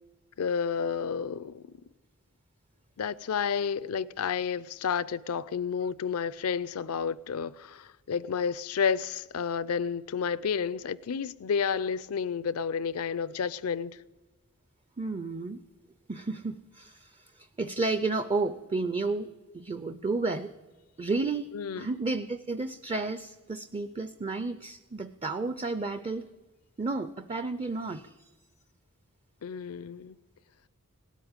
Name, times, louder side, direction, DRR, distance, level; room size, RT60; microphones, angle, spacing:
voice 1, 0.4-1.7 3.0-14.0 21.5-21.9 29.4-30.2, left 6 dB, 70° left, 0.5 m, -31 dB
voice 2, 15.0-15.6 16.1-17.1 17.6-19.3 19.5-20.5 21.0-21.5 21.8-26.3 26.8-28.1, right 3 dB, 25° right, 0.5 m, -31 dB
18.0 x 8.3 x 8.8 m
head